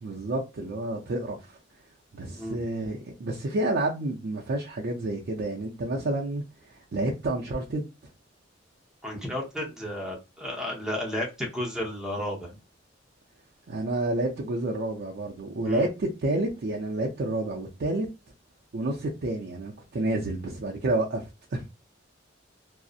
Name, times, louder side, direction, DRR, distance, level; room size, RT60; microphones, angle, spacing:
voice 1, 0.0-1.6 2.1-7.9 13.7-18.1 18.7-21.6, right 2 dB, 55° right, 0.4 m, -29 dB
voice 2, 9.0-12.6 15.6-15.9, left 1 dB, 5° right, 0.7 m, -32 dB
2.6 x 2.0 x 2.3 m
head